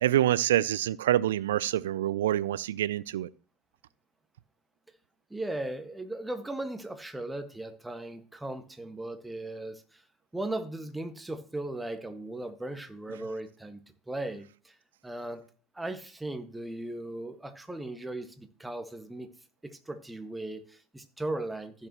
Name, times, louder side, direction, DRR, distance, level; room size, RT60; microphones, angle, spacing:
voice 1, 0.0-3.3, right 12 dB, 80° right, 0.4 m, -26 dB
voice 2, 5.3-10.0 10.3-13.8 14.1-14.7 15.0-15.4 15.7-19.3 19.6-21.9, right 1 dB, 10° right, 1.6 m, -37 dB
15.5 x 6.7 x 3.0 m
hypercardioid pair, 75°, 0 cm